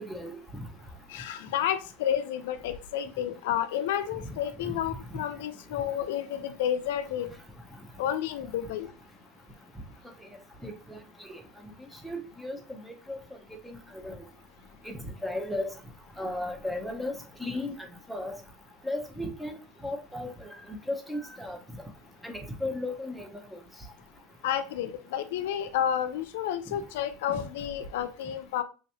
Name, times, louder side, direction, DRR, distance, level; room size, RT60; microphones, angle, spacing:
voice 1, 0.1-0.7 4.6-4.7 10.6-11.0 11.3-11.4 12.0-13.2 13.6-13.8 14.0-14.1 14.8-15.7 16.2-17.7 18.1-18.4 18.8-19.6 19.8-20.5 20.9-21.6 22.2-23.3, left 1 dB, 5° right, 4 dB, 0.7 m, -35 dB
voice 2, 1.1-7.3 8.0-8.9 24.4-28.6, left 10 dB, 85° left, 10 dB, 0.5 m, -31 dB
3.4 x 3.0 x 2.8 m, 0.34 s
supercardioid pair, 140°, 0 cm